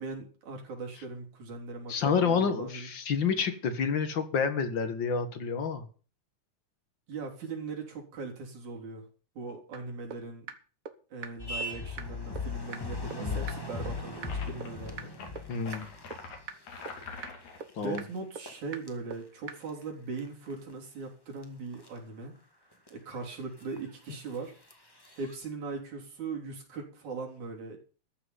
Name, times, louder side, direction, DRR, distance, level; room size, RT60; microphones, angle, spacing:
voice 1, 0.0-2.9 7.1-9.1 9.4-10.5 11.1-15.1 17.8-22.4 22.9-24.5 25.1-27.8, right 4 dB, 75° right, 1 dB, 4.8 m, -39 dB
voice 2, 1.9-5.9 13.1-13.4 15.5-15.9 17.8-18.0, left 6 dB, 50° left, 10 dB, 1.8 m, -29 dB
sound 1, 9.7-9.8 10.1-10.2 10.5-10.6 10.9-11.0 11.2-11.3 11.6-11.7 12.0-12.1 12.4-12.5 12.7-12.8 13.1-13.2 13.5-13.6 13.9-14.0 14.2-14.3 14.6-14.7 15.0-15.1 15.4-15.5 15.7-15.8 16.1-16.2 16.5-16.6 16.9-17.0 17.2-17.3 17.6-17.7 18.0-18.1 18.4-18.5 18.7-18.8 19.1-19.2 19.5-19.6, right 6 dB, 55° right, 0.9 m, -39 dB
sound 2, 11.4-16.4 16.8-17.3 17.6-18.0 18.4-18.5 18.9-19.0 20.2-20.7 21.4-21.5 21.7-21.9 22.9-23.0 23.1-23.2 23.6-23.8 24.7-24.8 25.0-25.3, left 3 dB, 10° left, 1.4 m, -37 dB
sound 3, 14.3-14.7 15.1-17.6, left 4 dB, 75° left, 3.9 m, -45 dB
14.0 x 6.0 x 9.6 m, 0.39 s
omnidirectional pair, 3.4 m